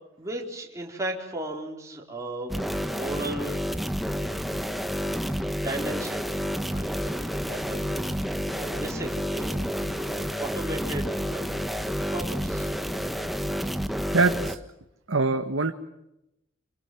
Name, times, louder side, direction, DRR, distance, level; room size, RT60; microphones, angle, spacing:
voice 1, 0.2-2.6 2.9-3.5 5.5-6.3 6.7-11.7 12.0-12.7, right 1 dB, 15° right, -1 dB, 4.1 m, -36 dB
sound 1, 2.5-14.6, equal, ahead, 1.4 m, -30 dB
voice 2, 14.1-14.6 15.1-15.7, right 3 dB, 90° right, 6 dB, 1.5 m, -23 dB
27.5 x 26.0 x 7.9 m, 0.84 s
head